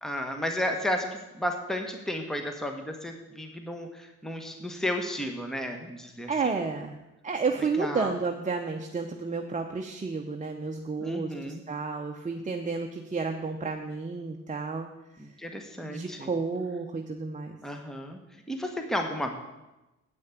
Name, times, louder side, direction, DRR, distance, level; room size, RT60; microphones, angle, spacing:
voice 1, 0.0-6.3 7.8-8.1 11.0-11.6 15.2-16.3 17.6-18.2 18.5-19.3, left 1 dB, ahead, 4 dB, 1.2 m, -33 dB
voice 2, 6.3-14.9 15.1-15.2 15.8-17.6, right 4 dB, 25° right, 3 dB, 0.9 m, -31 dB
8.9 x 6.4 x 8.3 m, 1.0 s
cardioid pair, 90°, 30 cm